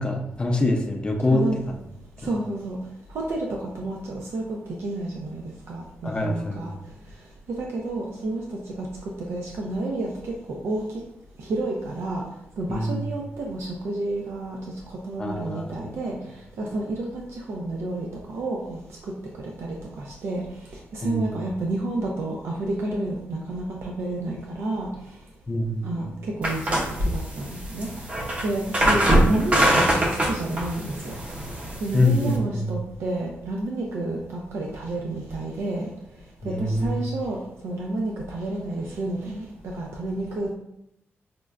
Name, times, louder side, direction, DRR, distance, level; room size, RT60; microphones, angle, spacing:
voice 1, 0.0-1.5 2.2-2.3 6.0-6.7 12.7-13.1 15.2-16.0 21.0-21.4 25.5-26.1 31.9-32.7 36.4-37.1, left 1 dB, 20° left, 2 dB, 0.5 m, -25 dB
voice 2, 2.2-2.8 3.1-5.4 5.7-6.7 7.5-8.9 9.3-10.8 11.4-12.2 12.6-14.6 15.0-16.1 16.6-18.8 19.6-20.4 20.9-24.9 25.8-26.8 27.1-27.9 28.4-31.2 31.8-34.2 34.5-35.9 36.4-37.4 37.6-39.5 39.7-40.5, right 2 dB, 75° right, -1 dB, 0.5 m, -30 dB
sound 1, 26.4-32.4, right 1 dB, 30° right, 0.6 m, -23 dB
5.1 x 2.1 x 2.3 m, 0.79 s
wide cardioid pair, 155°, 4 cm